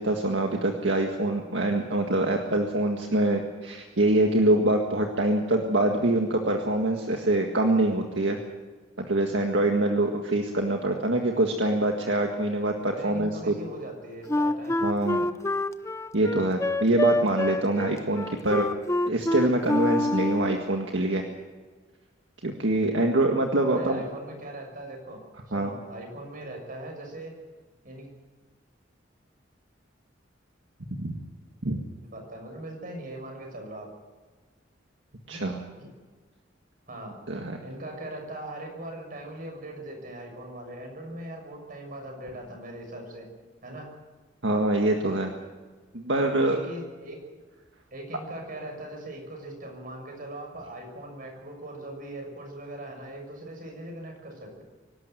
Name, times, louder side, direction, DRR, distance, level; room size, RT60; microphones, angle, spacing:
voice 1, 0.0-8.4 9.1-13.6 14.8-15.3 16.1-18.7 19.1-21.2 22.4-24.0 25.5-25.7 30.9-31.1 31.6-31.8 35.3-35.6 37.3-37.6 44.4-45.3 45.9-46.6, right 1 dB, 70° right, 2 dB, 1.8 m, -25 dB
voice 2, 12.9-14.8 23.7-25.2 25.5-27.3 27.8-28.1 32.0-33.9 35.3-35.9 36.9-37.2 37.6-43.3 43.6-43.9 46.5-47.2 47.9-54.6, right 1 dB, 45° right, 2 dB, 6.6 m, -40 dB
Wind instrument woodwind instrument, 14.3-20.6, left 2 dB, 15° left, 0.6 m, -26 dB
24.5 x 12.5 x 9.2 m, 1.4 s
head